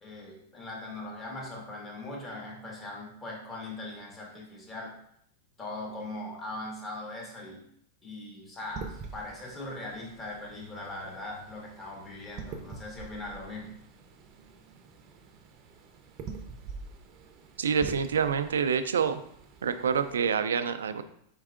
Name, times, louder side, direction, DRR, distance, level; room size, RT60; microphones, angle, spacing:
voice 1, 0.0-4.9 5.6-7.6 8.0-13.7, left 2 dB, 25° left, -2 dB, 1.5 m, -40 dB
sound 1, 8.6-20.4, right 5 dB, 40° right, 0.6 m, -46 dB
voice 2, 17.6-19.2 19.6-21.0, right 6 dB, 85° right, 11 dB, 0.3 m, -27 dB
4.6 x 4.4 x 2.5 m, 0.71 s
hypercardioid pair, 115°, 0 cm